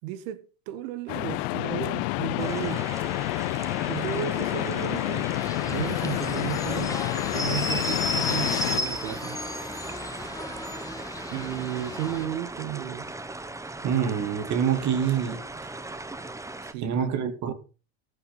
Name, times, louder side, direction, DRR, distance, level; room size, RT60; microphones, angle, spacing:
voice 1, 0.0-2.8 3.9-5.3 5.7-7.0 7.3-9.4 11.3-13.1 16.6-17.5, right 13 dB, 65° right, 1.9 m, -34 dB
sound 1, 1.1-8.8, left 22 dB, 60° left, 0.8 m, -29 dB
sound 2, 2.4-16.7, right 2 dB, 5° right, 1.1 m, -39 dB
sound 3, 5.3-12.3, left 1 dB, 10° left, 1.7 m, -33 dB
voice 2, 13.8-15.4 16.8-17.5, right 8 dB, 40° right, 2.8 m, -26 dB
15.5 x 8.8 x 5.7 m
supercardioid pair, 115°, 41 cm